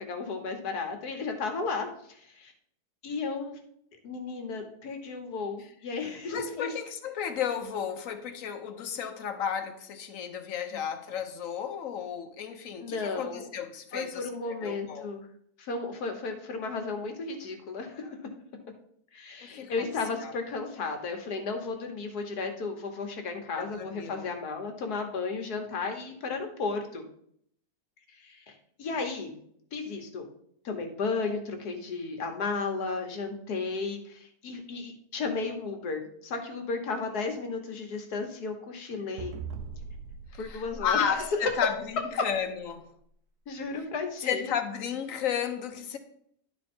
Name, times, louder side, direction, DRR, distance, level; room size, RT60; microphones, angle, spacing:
voice 1, 0.1-2.5 3.0-3.6 4.0-6.7 10.7-10.8 12.8-13.5 13.9-15.3 15.6-18.2 19.1-27.0 28.2-28.5 28.8-29.3 29.7-30.3 30.6-39.4 40.4-41.3 43.5-44.5, left 4 dB, 85° left, 1.8 m, -34 dB
voice 2, 6.3-15.1 19.4-19.9 20.2-20.3 23.6-24.3 40.3-42.9 44.3-46.0, left 8 dB, 60° left, 1.3 m, -33 dB
sound 1, 39.2-41.9, right 5 dB, 85° right, 1.3 m, -41 dB
11.0 x 4.6 x 4.3 m
omnidirectional pair, 1.6 m